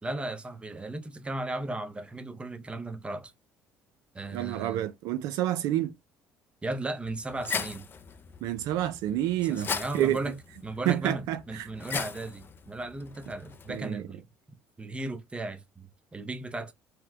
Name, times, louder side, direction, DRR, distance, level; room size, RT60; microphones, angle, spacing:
voice 1, 0.0-3.3 4.1-4.9 6.6-7.9 9.4-14.2 14.8-16.7, right 2 dB, 20° right, 0.6 m, -36 dB
voice 2, 4.3-5.9 8.4-10.2 10.9-11.7 13.7-14.0, right 13 dB, 75° right, 0.3 m, -29 dB
sound 1, 7.0-13.8, left 6 dB, 35° left, 0.4 m, -39 dB
4.2 x 2.1 x 2.3 m
supercardioid pair, 75°, 6 cm